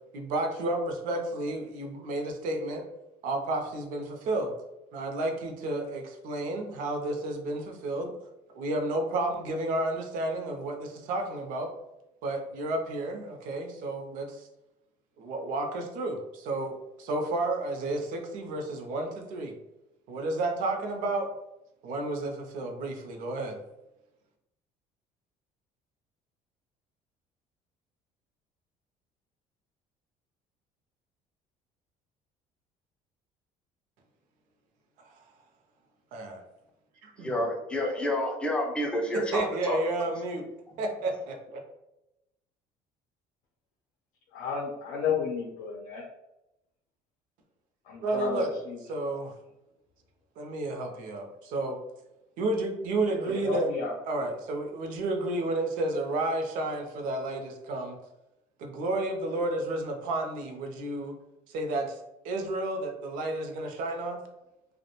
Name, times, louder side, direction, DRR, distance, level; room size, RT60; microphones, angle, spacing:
voice 1, 0.1-2.8 3.2-4.5 4.9-8.1 8.5-11.7 12.2-14.5 15.2-19.5 20.1-21.3 21.8-23.6 35.0-35.1 36.1-36.4 37.0-37.4 39.3-40.4 40.8-41.6 48.0-48.5 48.8-49.3 50.4-51.8 52.4-53.7 54.0-58.0 58.6-61.1 61.5-62.0 62.2-64.2, right 2 dB, 70° right, 4 dB, 0.5 m, -31 dB
voice 2, 37.2-40.1, left 1 dB, 5° left, 1 dB, 0.3 m, -29 dB
voice 3, 44.3-46.0 47.9-48.5 53.3-53.9, left 6 dB, 85° left, -1 dB, 0.5 m, -31 dB
2.3 x 2.1 x 2.8 m, 0.91 s
cardioid pair, 150°, 14 cm